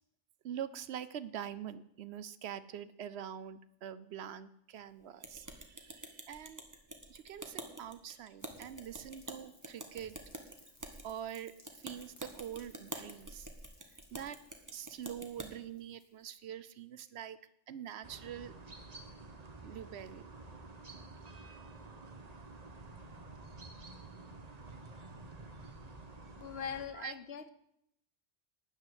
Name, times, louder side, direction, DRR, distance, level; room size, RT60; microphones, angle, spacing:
voice 1, 0.4-6.6 7.1-10.1 11.0-13.5 14.1-14.4 14.7-17.4 17.7-18.5 19.6-20.2 26.9-27.2, right 9 dB, 70° right, 15 dB, 0.8 m, -44 dB
sound 1, 5.2-15.5, right 1 dB, 15° right, 1.3 m, -47 dB
Rain, 8.4-16.5, left 1 dB, 25° left, 1.9 m, -64 dB
sound 2, 18.0-26.9, right 3 dB, 35° right, 1.1 m, -50 dB
voice 2, 26.4-27.5, left 7 dB, 60° left, 12 dB, 1.0 m, -41 dB
12.5 x 5.7 x 9.3 m, 0.74 s
omnidirectional pair, 1.2 m